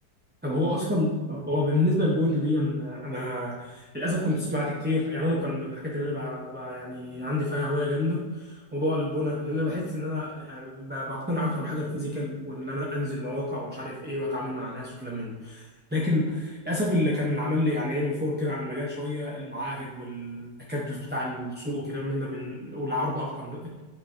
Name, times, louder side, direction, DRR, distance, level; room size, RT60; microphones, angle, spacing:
voice 1, 0.4-15.6 15.9-23.8, left 1 dB, 10° right, -5 dB, 0.7 m, -29 dB
8.3 x 6.0 x 2.8 m, 1.3 s
omnidirectional pair, 1.7 m